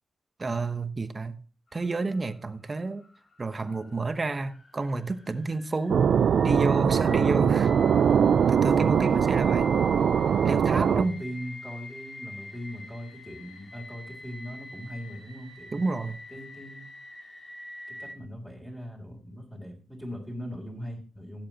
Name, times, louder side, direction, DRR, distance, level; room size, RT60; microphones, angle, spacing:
voice 1, 0.4-1.4 1.7-3.0 3.4-6.1 6.4-7.9 8.5-9.7 10.4-11.2 15.7-16.2, right 3 dB, 35° right, 1.1 m, -30 dB
sound 1, 1.7-18.1, left 2 dB, 50° left, 1.9 m, -46 dB
sound 2, 5.9-11.0, right 7 dB, 80° right, 0.4 m, -22 dB
voice 2, 7.0-7.4 8.9-9.3 10.6-15.8 16.3-16.9 17.9-21.5, equal, 10° left, 3.4 m, -40 dB
16.5 x 7.4 x 3.0 m
cardioid pair, 80°, 0 cm